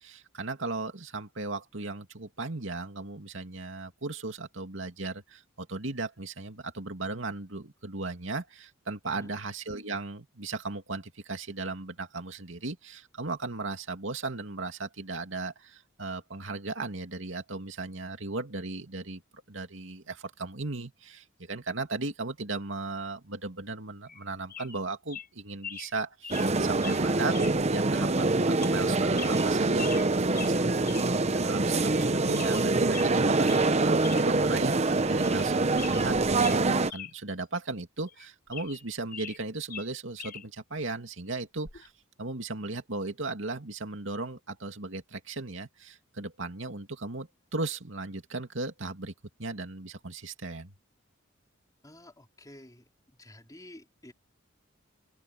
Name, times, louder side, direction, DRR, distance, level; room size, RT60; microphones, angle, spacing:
voice 1, 0.0-31.2 31.4-41.9 42.2-49.1 49.4-50.7, right 3 dB, 70° right, 2.6 m, -36 dB
voice 2, 9.1-9.4 51.8-52.9 53.2-54.1, left 1 dB, 20° left, 4.1 m, -50 dB
sound 1, 24.1-24.2 24.5-24.8 25.1-25.3 25.6-25.9 26.2-26.5 26.8-27.0 27.3-27.6 27.9-28.0 28.6-28.8 29.1-30.1 30.3-30.5 30.8-31.1 31.4-31.5 31.8-32.1 32.3-33.1 33.4-33.7 34.0-34.3 34.6-34.7 35.1-35.5 35.7-37.1 37.4-37.5 38.1-39.4 39.7-40.4 41.6-41.9, left 8 dB, 50° left, 4.0 m, -42 dB
sound 2, 26.3-36.9, right 3 dB, 35° right, 0.9 m, -25 dB
head